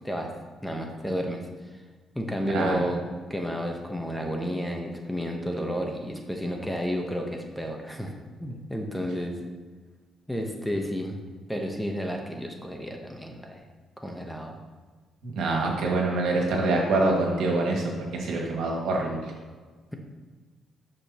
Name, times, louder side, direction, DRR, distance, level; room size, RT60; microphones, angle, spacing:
voice 1, 0.6-1.4 2.1-3.0 3.3-8.1 8.4-9.4 10.3-11.2 11.5-13.6 14.0-14.6, equal, ahead, 2 dB, 1.0 m, -31 dB
voice 2, 15.2-19.3, right 2 dB, 80° right, -1 dB, 2.0 m, -25 dB
11.5 x 5.1 x 2.9 m, 1.4 s
cardioid pair, 90°, 0 cm